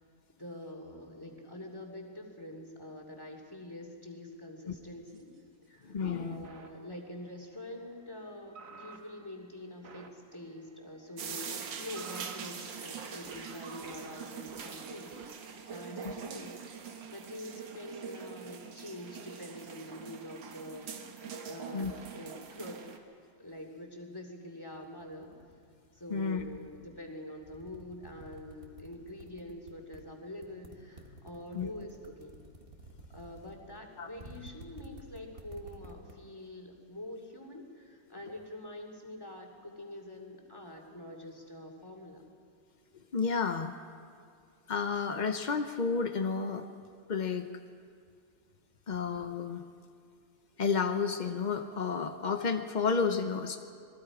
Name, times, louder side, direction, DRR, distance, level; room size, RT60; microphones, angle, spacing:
voice 1, 0.4-5.3 5.7-16.6 17.1-20.9 21.4-23.0 23.4-25.3 25.9-32.4 33.1-42.2, left 1 dB, 10° left, 1 dB, 2.5 m, -45 dB
sound 1, 5.1-5.4 6.4-15.3, right 4 dB, 50° right, 1.6 m, -53 dB
voice 2, 5.8-6.5 16.0-16.1 21.7-21.9 26.1-26.4 31.5-31.7 34.0-34.1 43.1-43.7 44.7-46.7 47.1-47.5 48.9-49.6 50.6-53.6, left 5 dB, 75° left, 6 dB, 0.4 m, -31 dB
sound 2, 11.2-23.0, right 6 dB, 75° right, 2.0 m, -43 dB
sound 3, 24.7-27.0 27.3-30.0 30.4-36.1, right 2 dB, 30° right, 1.6 m, -51 dB
27.0 x 20.0 x 4.9 m, 2.2 s
omnidirectional pair, 2.0 m